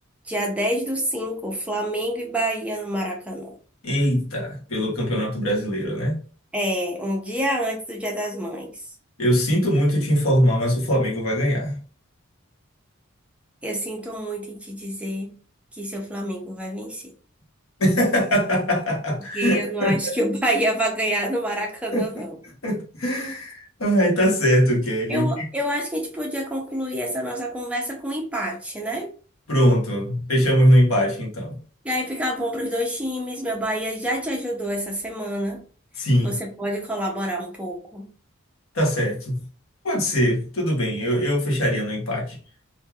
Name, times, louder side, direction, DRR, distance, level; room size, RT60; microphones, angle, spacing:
voice 1, 0.2-3.5 6.5-8.8 13.6-15.3 15.7-17.1 19.3-22.3 25.1-29.1 31.8-35.6 36.0-38.1, equal, 5° right, 0.5 m, -27 dB
voice 2, 3.8-6.2 9.2-11.8 17.8-20.1 21.9-22.0 22.6-25.5 29.5-31.6 36.0-36.4 38.7-39.4 39.8-42.4, equal, 85° left, 0.9 m, -21 dB
3.2 x 2.2 x 2.3 m
head